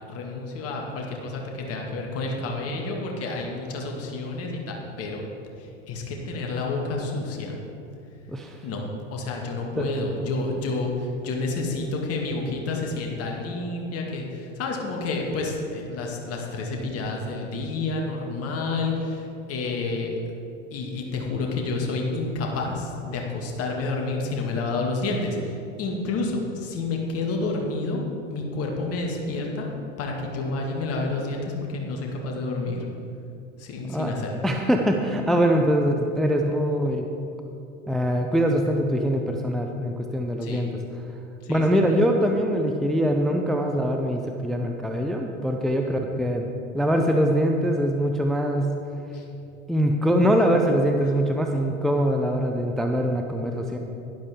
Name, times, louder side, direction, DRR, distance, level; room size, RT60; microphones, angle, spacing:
voice 1, 0.1-5.2 5.9-7.6 8.6-8.8 9.1-20.1 20.7-28.0 28.3-32.9 33.6-34.3 40.4-40.6 41.4-41.6 45.8-46.0 49.1-49.2, left 3 dB, 40° left, 0 dB, 2.0 m, -29 dB
voice 2, 34.4-37.1 37.9-40.7 41.5-46.5 46.7-48.7 49.7-53.8, equal, ahead, 3 dB, 0.5 m, -23 dB
11.5 x 11.0 x 3.6 m, 2.7 s
figure-of-eight pair, 85°, 38 cm